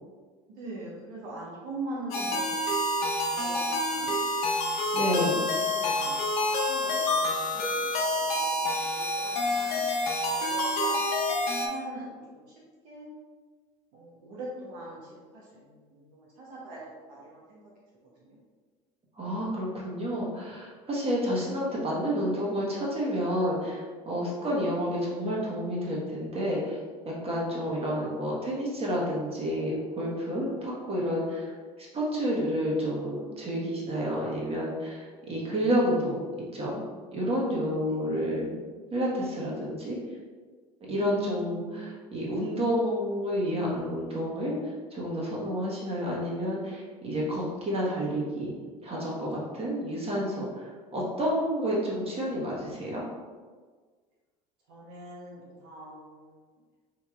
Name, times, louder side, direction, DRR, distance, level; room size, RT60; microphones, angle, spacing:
voice 1, 0.5-2.6 3.2-4.2 5.2-9.8 10.4-13.1 13.9-16.8 17.1-17.6 18.2-18.4 27.5-27.7 37.8-38.3 41.0-41.9 54.7-56.4, right 2 dB, 70° right, -5 dB, 1.0 m, -43 dB
sound 1, 2.1-11.7, left 1 dB, 75° left, 0.8 m, -28 dB
voice 2, 4.9-5.4 19.2-26.8 27.0-31.4 31.8-36.8 37.1-38.5 38.9-40.0 40.9-44.5 44.9-48.5 48.8-50.5 50.9-53.0, equal, 30° right, -4 dB, 1.4 m, -30 dB
4.9 x 2.7 x 2.4 m, 1.5 s
hypercardioid pair, 70°, 19 cm